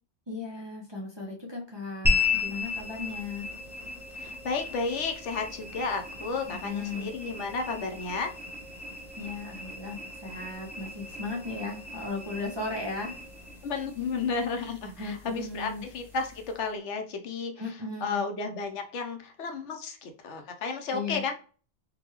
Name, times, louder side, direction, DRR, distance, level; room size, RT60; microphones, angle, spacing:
voice 1, 0.3-3.6 6.5-7.1 9.2-13.2 15.0-15.8 17.6-18.3 20.9-21.2, left 3 dB, 30° right, -3 dB, 0.6 m, -36 dB
sound 1, 2.0-16.7, left 4 dB, ahead, 0.8 m, -35 dB
voice 2, 4.2-8.3 13.6-17.7 18.0-21.3, left 4 dB, 75° left, 5 dB, 1.0 m, -33 dB
3.9 x 2.2 x 2.9 m, 0.39 s
omnidirectional pair, 1.2 m